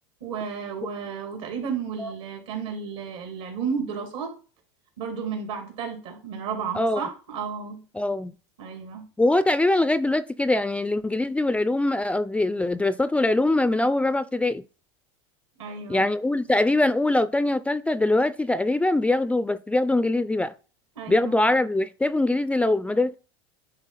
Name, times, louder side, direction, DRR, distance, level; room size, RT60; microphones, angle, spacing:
voice 1, 0.2-4.3 5.0-7.8 8.6-9.1 15.6-16.0 20.9-21.4, right 6 dB, 80° right, 2.8 m, -32 dB
voice 2, 7.9-8.3 9.2-14.6 15.9-20.5 21.1-23.2, left 2 dB, 10° left, 0.3 m, -23 dB
9.6 x 3.7 x 4.1 m
supercardioid pair, 105°, 15 cm